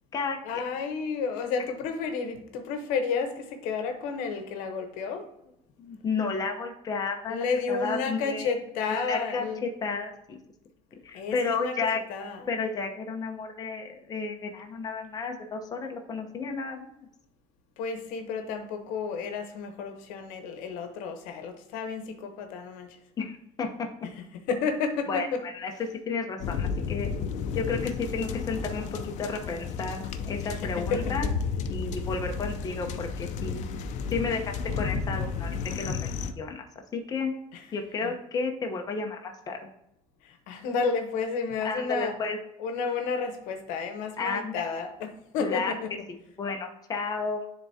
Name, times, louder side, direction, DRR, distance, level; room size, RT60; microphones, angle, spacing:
voice 1, 0.4-5.3 7.3-9.6 11.1-12.6 17.8-23.0 24.0-25.4 25.7-25.8 30.4-31.4 37.5-38.1 40.2-42.2 42.6-46.1, left 5 dB, 80° left, 1.0 m, -32 dB
voice 2, 5.8-8.5 9.1-9.4 9.8-10.4 11.0-12.0 12.5-16.9 23.2-23.9 25.1-25.3 25.5-25.7 26.1-27.1 27.5-30.8 31.1-31.3 31.7-33.6 34.1-35.5 35.7-36.6 36.9-37.3 37.7-39.6 41.6-42.4 44.2-44.5 45.4-45.7 46.4-47.5, left 4 dB, 30° left, 0.9 m, -32 dB
sound 1, 26.4-36.3, left 5 dB, 65° left, 0.6 m, -32 dB
10.5 x 3.6 x 2.8 m
cardioid pair, 125°, 13 cm